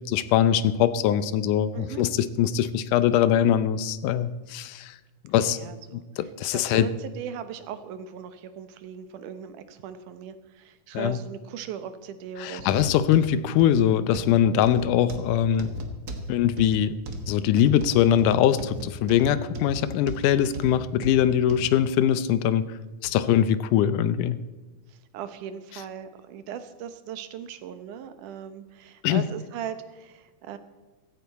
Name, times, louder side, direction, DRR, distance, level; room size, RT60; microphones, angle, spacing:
voice 1, 0.1-5.0 5.2-5.6 5.9-6.9 10.9-11.2 12.4-15.7 16.3-17.0 17.3-22.7 23.0-24.4 29.0-29.2, left 10 dB, 80° left, 14 dB, 2.2 m, -22 dB
voice 2, 1.7-2.0 5.4-6.0 6.5-12.8 24.9-30.6, right 8 dB, 80° right, 11 dB, 2.5 m, -38 dB
pasos plástico, 12.6-21.7 22.2-22.4 23.0-23.1, right 1 dB, 50° right, 1.2 m, -37 dB
16.0 x 14.0 x 4.2 m, 1.3 s
omnidirectional pair, 3.6 m